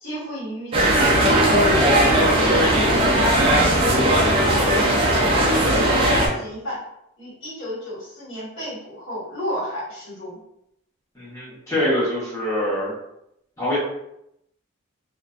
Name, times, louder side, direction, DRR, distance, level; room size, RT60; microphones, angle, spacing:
voice 1, 0.0-6.8 7.2-10.4, equal, 60° left, -8 dB, 1.4 m, -33 dB
sound 1, 0.7-6.3, right 1 dB, 25° right, 0.4 m, -18 dB
voice 2, 11.1-12.9 13.6-13.8, left 1 dB, 15° left, -9 dB, 1.0 m, -24 dB
2.5 x 2.1 x 2.4 m, 0.80 s
head